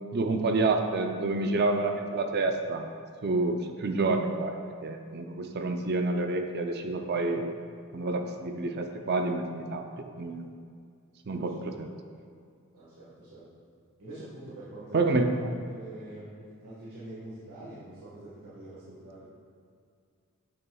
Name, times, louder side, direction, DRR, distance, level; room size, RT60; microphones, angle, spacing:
voice 1, 0.1-2.8 3.2-4.6 4.8-7.5 7.9-9.8 10.2-10.5 11.3-11.5 11.8-11.9 14.9-15.3, right 3 dB, 45° right, 5 dB, 0.5 m, -28 dB
voice 2, 11.3-11.7 12.7-13.5 14.0-19.3, right 1 dB, 85° right, -10 dB, 1.5 m, -45 dB
8.6 x 6.8 x 2.3 m, 2.2 s
head